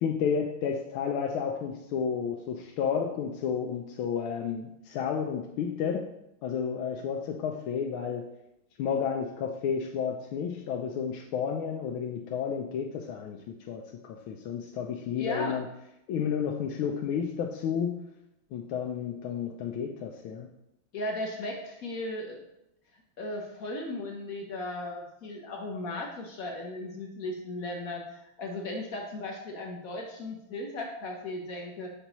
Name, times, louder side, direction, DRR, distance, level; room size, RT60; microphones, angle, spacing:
voice 1, 0.0-6.1 6.4-8.3 8.8-13.4 13.7-15.7 16.1-18.0 18.5-20.5, left 7 dB, 75° left, 1 dB, 1.4 m, -31 dB
voice 2, 15.2-15.6 20.9-22.4 23.2-31.9, left 2 dB, 60° left, 1 dB, 0.9 m, -36 dB
6.8 x 5.4 x 3.0 m, 0.83 s
omnidirectional pair, 2.4 m